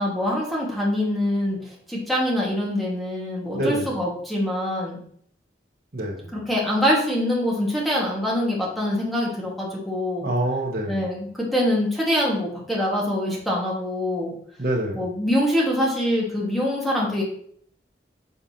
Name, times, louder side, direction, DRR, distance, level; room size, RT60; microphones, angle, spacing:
voice 1, 0.0-1.6 1.9-5.0 6.3-10.3 10.9-14.3 14.9-17.2, left 1 dB, ahead, -4 dB, 1.7 m, -24 dB
voice 2, 3.5-3.9 5.9-6.3 10.2-11.1 14.6-15.1, right 1 dB, 55° right, 0 dB, 1.3 m, -26 dB
6.9 x 5.1 x 2.9 m, 0.62 s
head